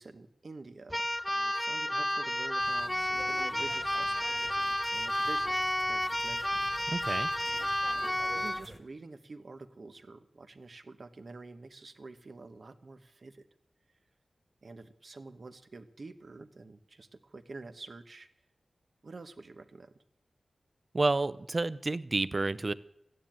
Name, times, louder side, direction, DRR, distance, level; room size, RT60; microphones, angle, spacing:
voice 1, 0.0-6.6 7.9-13.5 14.6-18.3 19.0-20.0, right 3 dB, 55° right, 10 dB, 1.2 m, -48 dB
Keyboard (musical), 0.9-8.7, left 1 dB, 10° left, 0.5 m, -31 dB
sound 1, 2.6-8.8, right 1 dB, 15° right, 2.0 m, -50 dB
voice 2, 6.9-7.3 20.9-22.7, right 2 dB, 35° right, 17 dB, 0.6 m, -30 dB
14.5 x 10.0 x 8.8 m, 0.78 s
wide cardioid pair, 110°, 0 cm